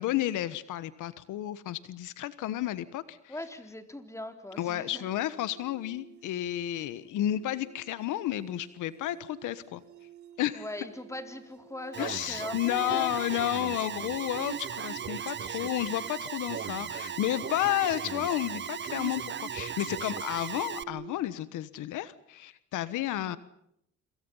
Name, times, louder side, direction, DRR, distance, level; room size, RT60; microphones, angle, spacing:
voice 1, 0.0-3.3 4.6-9.8 10.4-10.6 12.0-23.4, left 13 dB, 90° left, 15 dB, 1.3 m, -32 dB
voice 2, 3.3-5.1 10.5-13.1 23.2-23.4, left 1 dB, 10° left, 7 dB, 4.0 m, -40 dB
sound 1, 4.5-21.1, right 10 dB, 75° right, 2.7 m, -50 dB
Alarm, 11.9-20.8, right 7 dB, 35° right, 1.0 m, -37 dB
27.5 x 26.5 x 5.6 m, 0.73 s
cardioid pair, 90°, 30 cm